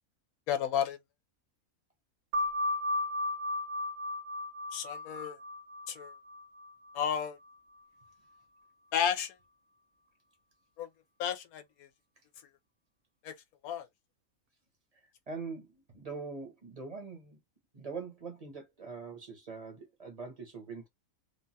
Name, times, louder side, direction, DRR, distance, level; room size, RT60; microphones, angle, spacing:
voice 1, 0.5-1.0 4.7-5.4 5.9-6.1 6.9-7.4 8.9-9.3 10.8-10.9 11.2-11.6 13.2-13.3 13.6-13.9, left 8 dB, 85° left, 1.0 m, -32 dB
sound 1, 2.3-7.5, left 1 dB, 70° right, 1.2 m, -35 dB
voice 2, 15.3-17.4 17.7-20.9, right 4 dB, 30° right, 0.8 m, -43 dB
3.1 x 2.2 x 2.7 m
omnidirectional pair, 1.5 m